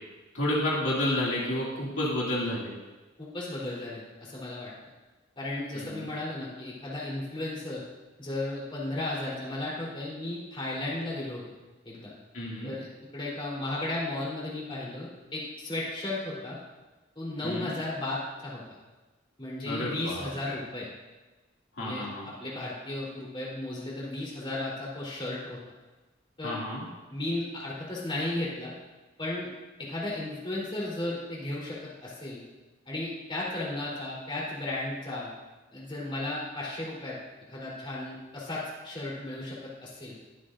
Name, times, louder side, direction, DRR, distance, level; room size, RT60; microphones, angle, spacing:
voice 1, 0.3-2.7 5.7-6.1 12.3-12.7 17.4-17.7 19.7-20.6 21.8-22.3 26.4-26.8, left 1 dB, 75° left, -6 dB, 2.5 m, -30 dB
voice 2, 3.2-4.7 5.4-7.8 8.2-11.4 11.8-12.1 12.6-12.9 13.1-16.6 17.2-18.6 19.4-20.9 21.8-22.1 22.4-25.6 26.4-26.6 27.1-28.7 29.2-29.5 29.8-31.8 32.0-32.4 32.9-35.3 35.7-37.2 37.5-40.2, left 2 dB, 25° left, -6 dB, 3.8 m, -34 dB
22.5 x 7.6 x 2.6 m, 1.2 s
head